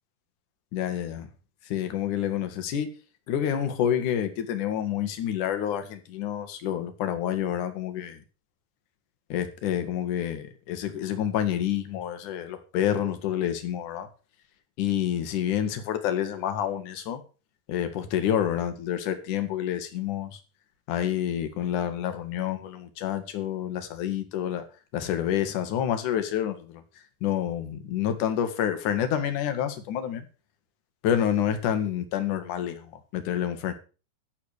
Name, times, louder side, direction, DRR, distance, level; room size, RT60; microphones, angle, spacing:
voice 1, 0.7-1.3 1.6-2.9 3.3-8.2 9.3-14.1 14.8-17.2 17.7-20.4 20.9-24.7 24.9-26.8 27.2-30.3 31.0-33.7, left 10 dB, 60° left, 2.9 m, -28 dB
12.0 x 8.3 x 6.6 m
omnidirectional pair, 4.6 m